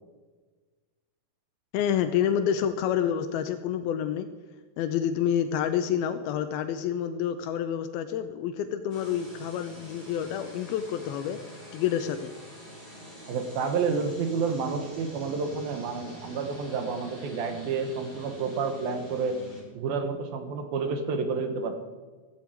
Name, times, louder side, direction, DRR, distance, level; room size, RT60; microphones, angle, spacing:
voice 1, 1.7-4.3 4.8-11.4 11.7-12.3, left 9 dB, 85° left, 8 dB, 2.6 m, -28 dB
sound 1, 8.9-19.6, equal, 15° right, 5.8 m, -46 dB
voice 2, 13.3-19.4 19.7-21.8, right 5 dB, 75° right, 6 dB, 3.1 m, -30 dB
15.5 x 14.0 x 4.6 m, 1.3 s
omnidirectional pair, 4.4 m